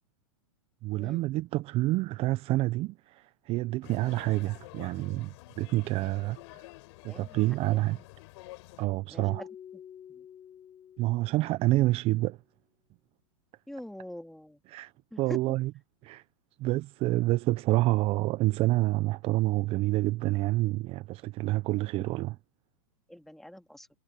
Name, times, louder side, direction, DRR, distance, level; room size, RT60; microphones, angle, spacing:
voice 1, 0.8-6.6 7.0-8.0 8.8-9.4 11.0-12.4 14.7-14.9 15.2-15.7 16.0-16.2 16.6-22.4, right 18 dB, 35° right, 0.7 m, -28 dB
sound 1, 3.8-8.9, left 22 dB, 55° left, 4.5 m, -49 dB
voice 2, 7.1-8.1 9.1-9.5 9.7-9.8 10.1-10.3 13.7-14.6 15.1-15.6 21.7-21.8 23.1-23.9, left 1 dB, ahead, 2.6 m, -44 dB
Keyboard (musical), 9.2-12.0, left 9 dB, 25° left, 3.2 m, -49 dB
hypercardioid pair, 120°, 18 cm